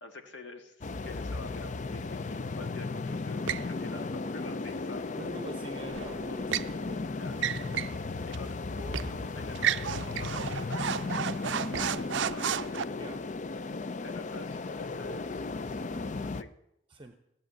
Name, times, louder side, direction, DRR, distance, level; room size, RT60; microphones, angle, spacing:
voice 1, 0.0-5.1 7.2-7.7 8.3-12.8 14.0-16.5, left 2 dB, 85° left, 5 dB, 1.7 m, -48 dB
sound 1, 0.8-16.4, left 3 dB, 40° left, 0.5 m, -35 dB
sound 2, 3.5-3.7 5.9-6.7 7.3-8.0 8.3-8.4 8.9-9.1 9.5-12.8, right 9 dB, 80° right, 0.4 m, -32 dB
voice 2, 5.1-7.6 13.0-13.2 16.9-17.1, right 1 dB, 30° right, 7 dB, 0.8 m, -46 dB
15.5 x 7.6 x 8.9 m, 0.84 s
head